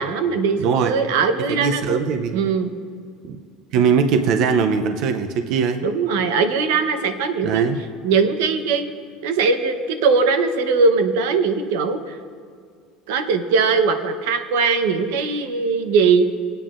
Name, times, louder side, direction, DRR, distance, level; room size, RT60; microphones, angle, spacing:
voice 1, 0.0-1.8 2.3-2.7 5.8-7.7 8.0-8.8 9.2-12.2 13.1-16.2, right 4 dB, 85° right, 7 dB, 0.9 m, -20 dB
voice 2, 0.6-0.9 1.4-2.4 3.3-3.4 3.7-5.8 7.4-7.8, right 6 dB, 45° right, 6 dB, 0.5 m, -20 dB
21.5 x 9.0 x 2.5 m, 2.2 s
cardioid pair, 180°, 0 cm